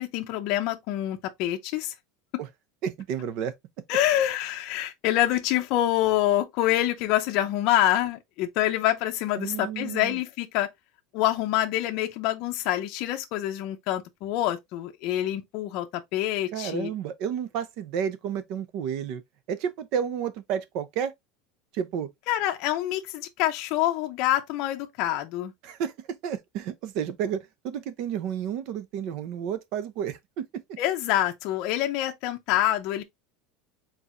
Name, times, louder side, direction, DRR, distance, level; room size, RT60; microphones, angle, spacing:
voice 1, 0.0-1.9 3.9-10.7 11.1-16.9 22.3-25.5 30.8-33.0, left 13 dB, 40° left, 0.6 m, -26 dB
voice 2, 2.8-3.5 9.3-10.2 16.5-19.2 19.5-21.1 21.7-22.1 25.6-30.8, right 8 dB, 40° right, 0.6 m, -31 dB
4.5 x 4.0 x 2.5 m
supercardioid pair, 180°, 0 cm